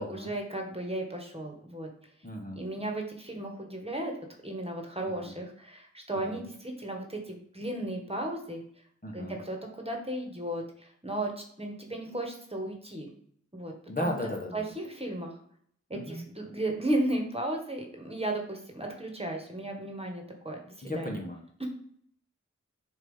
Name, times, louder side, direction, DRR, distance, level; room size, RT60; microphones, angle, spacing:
voice 1, 0.0-1.9 2.6-4.1 4.4-8.6 9.1-13.1 13.5-13.7 14.0-14.1 14.5-15.4 15.9-21.2 21.6-21.7, right 1 dB, 20° right, 2 dB, 1.5 m, -35 dB
voice 2, 2.2-2.6 5.2-5.3 6.1-6.4 9.0-9.4 13.9-14.6 15.9-16.2 20.8-21.4, left 1 dB, 30° left, 1 dB, 1.3 m, -35 dB
7.1 x 2.8 x 5.5 m, 0.64 s
wide cardioid pair, 45°, 30 cm